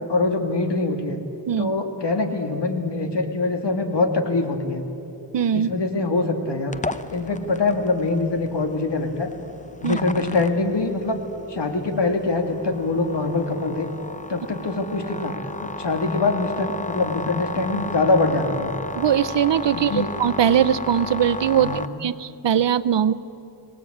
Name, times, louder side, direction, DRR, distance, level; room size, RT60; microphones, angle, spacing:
voice 1, 0.1-1.2 1.6-4.8 5.5-6.8 7.1-9.3 9.8-11.2 11.5-13.9 14.3-15.3 15.6-18.7 19.7-20.1 21.6-21.9, left 3 dB, 65° left, 5 dB, 2.5 m, -23 dB
voice 2, 5.3-5.7 9.8-10.0 18.9-23.1, right 9 dB, 75° right, 15 dB, 0.8 m, -21 dB
sound 1, 6.7-21.9, left 3 dB, 15° left, 0.8 m, -34 dB
24.5 x 18.5 x 8.6 m, 2.8 s
wide cardioid pair, 75°, 44 cm